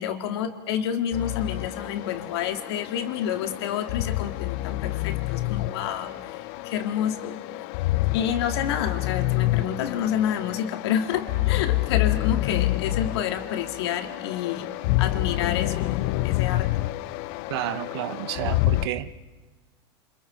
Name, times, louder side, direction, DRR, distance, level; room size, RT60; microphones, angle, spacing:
voice 1, 0.0-7.4 8.1-14.7 15.0-15.9 16.2-16.7, left 9 dB, 70° left, 2.2 m, -29 dB
sound 1, 1.1-18.9, left 18 dB, 55° left, 0.6 m, -28 dB
voice 2, 17.5-19.1, right 13 dB, 70° right, 1.2 m, -30 dB
29.5 x 26.0 x 4.4 m
supercardioid pair, 130°, 14 cm